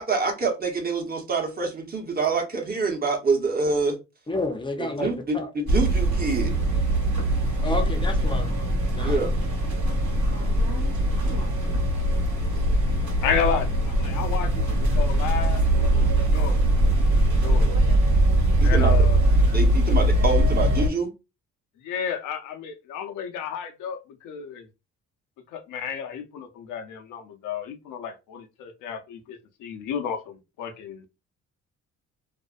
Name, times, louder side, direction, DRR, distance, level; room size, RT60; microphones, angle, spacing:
voice 1, 0.0-4.0 4.8-6.5 9.0-9.3 18.6-18.9 19.5-21.1, right 4 dB, 30° right, 0.9 m, -26 dB
voice 2, 4.3-5.5 7.6-8.5 9.0-9.2, left 2 dB, 15° left, 0.5 m, -30 dB
sound 1, 5.7-20.9, right 1 dB, 70° right, 1.1 m, -21 dB
voice 3, 13.2-16.6 17.0-17.7 18.6-19.2 21.8-24.7 25.5-31.0, left 7 dB, 85° left, 0.6 m, -32 dB
2.4 x 2.1 x 2.4 m
cardioid pair, 90°, 30 cm